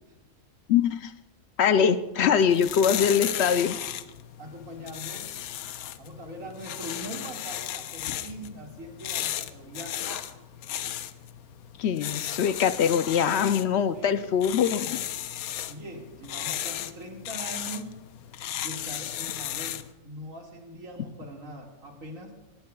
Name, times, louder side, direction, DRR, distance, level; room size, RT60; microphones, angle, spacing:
voice 1, 0.7-1.1 1.6-3.8 11.8-15.0, left 7 dB, 65° left, 12 dB, 0.7 m, -23 dB
sound 1, 2.3-19.9, left 11 dB, 85° left, 1.1 m, -35 dB
voice 2, 4.4-5.3 6.0-10.3 13.9-14.1 15.6-17.9 18.6-22.3, right 1 dB, 70° right, 0 dB, 2.4 m, -41 dB
19.5 x 15.5 x 2.3 m, 1.0 s
omnidirectional pair, 1.5 m